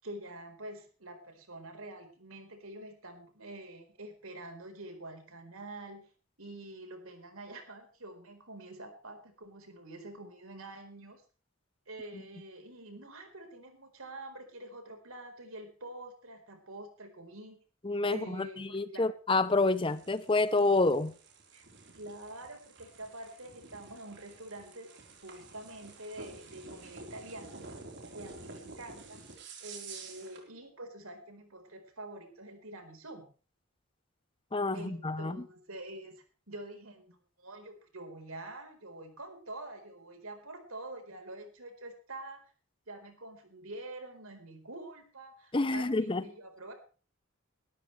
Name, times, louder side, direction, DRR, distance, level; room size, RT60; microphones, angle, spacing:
voice 1, 0.0-6.1 6.4-11.2 11.9-17.6 18.1-19.1 21.5-21.7 21.9-24.9 25.2-27.6 28.1-29.2 29.6-33.3 34.7-42.4 42.9-46.7, right 1 dB, 75° right, 4.4 m, -46 dB
voice 2, 17.8-21.1 34.5-35.4 45.5-46.2, left 3 dB, 25° left, 0.7 m, -28 dB
sound 1, 19.5-30.5, right 3 dB, 55° right, 4.2 m, -50 dB
21.0 x 13.0 x 3.3 m
head